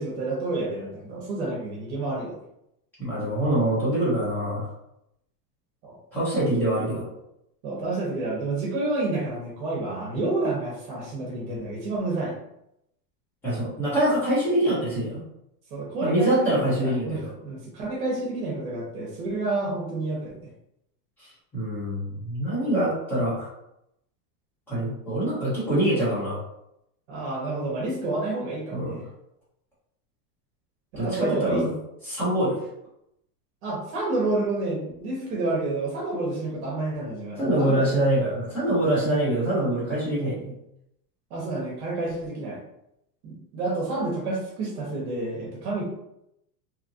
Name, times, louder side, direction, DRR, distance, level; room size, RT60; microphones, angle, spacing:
voice 1, 0.0-2.4 5.8-6.0 7.6-12.4 15.7-20.3 27.1-29.0 31.0-31.6 33.6-37.8 39.0-39.2 41.3-42.6 43.2-45.8, right 2 dB, 45° right, -3 dB, 0.9 m, -29 dB
voice 2, 3.0-4.7 6.1-7.1 13.4-15.2 16.0-17.3 21.2-23.5 24.7-26.4 28.7-29.0 31.0-31.7 32.0-32.6 37.4-40.5, right 1 dB, 5° left, -10 dB, 0.4 m, -25 dB
2.8 x 2.3 x 2.6 m, 0.80 s
supercardioid pair, 165°, 50 cm